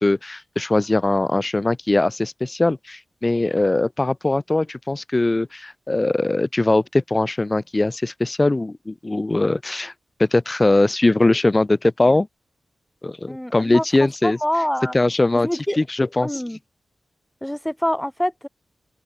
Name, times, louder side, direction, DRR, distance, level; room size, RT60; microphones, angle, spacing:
voice 1, 0.0-9.9 10.2-12.3 13.0-14.4 14.9-15.5 15.8-16.4, left 2 dB, 25° left, 0.5 m, -20 dB
voice 2, 13.3-13.8 14.2-15.0 15.3-15.8 16.2-16.6 17.4-18.5, equal, 5° left, 1.1 m, -25 dB
open air
cardioid pair, 70°, 0 cm